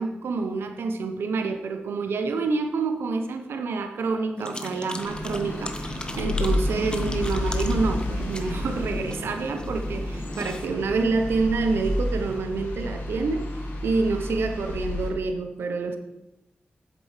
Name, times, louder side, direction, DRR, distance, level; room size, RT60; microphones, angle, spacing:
voice 1, 0.0-13.5 13.8-16.0, right 4 dB, 90° right, 6 dB, 0.8 m, -27 dB
sound 1, 4.4-10.7, left 1 dB, 25° left, 1.0 m, -37 dB
sound 2, 5.0-15.1, left 1 dB, 80° left, 1.9 m, -31 dB
8.1 x 7.3 x 5.0 m, 0.93 s
cardioid pair, 50°, 4 cm